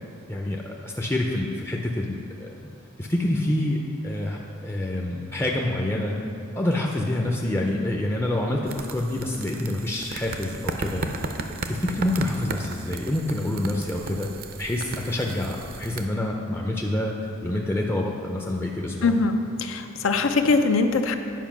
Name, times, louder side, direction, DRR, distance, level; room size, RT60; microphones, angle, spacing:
voice 1, 0.3-2.7 3.0-6.2 6.6-11.2 11.7-14.3 14.6-17.2 17.4-19.1, left 1 dB, 10° left, -1 dB, 0.5 m, -27 dB
sound 1, 8.7-16.1, right 3 dB, 50° right, 0.5 m, -35 dB
voice 2, 19.0-21.2, left 3 dB, 80° left, 7 dB, 0.6 m, -22 dB
9.2 x 4.9 x 5.9 m, 2.5 s
head